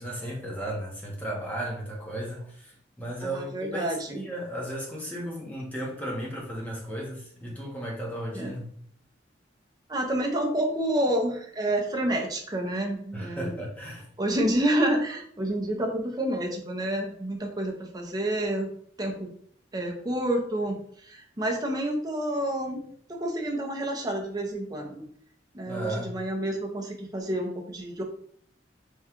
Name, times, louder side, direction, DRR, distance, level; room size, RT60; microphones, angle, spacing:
voice 1, 0.0-8.7 13.1-14.1 25.7-26.1, right 1 dB, 10° left, -3 dB, 0.8 m, -35 dB
voice 2, 3.2-4.2 8.3-8.5 9.9-13.5 14.2-18.7 19.0-19.3 19.7-20.8 21.0-22.8 23.1-25.0 25.5-28.0, right 1 dB, 20° right, 1 dB, 0.6 m, -29 dB
3.6 x 2.3 x 4.3 m, 0.63 s
head